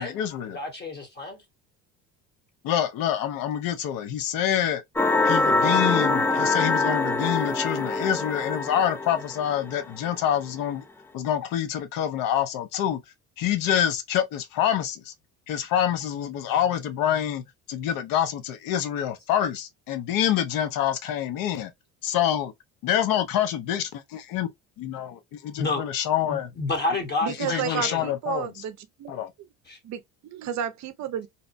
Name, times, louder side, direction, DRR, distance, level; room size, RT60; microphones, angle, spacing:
voice 1, 0.0-0.6 2.6-4.8 5.2-10.8 11.1-13.0 13.4-15.1 15.5-17.4 17.7-21.7 22.0-22.5 22.8-24.5 24.8-26.5 27.4-28.5 29.1-29.3, left 10 dB, 65° left, 0.7 m, -26 dB
voice 2, 0.5-1.4 25.6-25.8 26.2-28.1 29.6-29.8, left 3 dB, 25° left, 1.0 m, -29 dB
sound 1, 5.0-9.7 10.2-10.3, left 3 dB, 5° left, 0.3 m, -24 dB
voice 3, 27.2-29.1 29.8-31.3, right 9 dB, 50° right, 0.6 m, -32 dB
2.8 x 2.1 x 2.5 m
supercardioid pair, 95°, 37 cm